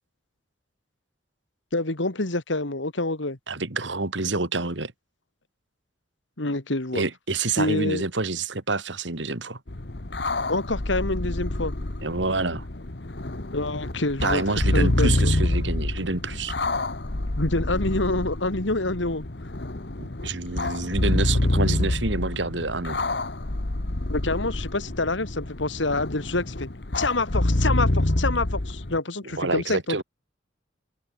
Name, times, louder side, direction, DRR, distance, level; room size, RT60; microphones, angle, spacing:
voice 1, 1.7-3.4 6.4-7.0 7.6-8.0 10.5-11.7 13.5-14.4 14.7-15.1 17.4-19.2 24.1-26.7 26.9-30.0, left 2 dB, 85° left, 2.6 m, -27 dB
voice 2, 3.5-4.9 6.9-9.6 12.0-12.7 14.2-16.5 20.2-23.0 29.2-30.0, right 3 dB, 80° right, 2.4 m, -27 dB
sound 1, 9.7-29.0, left 1 dB, 65° left, 1.5 m, -27 dB
open air
head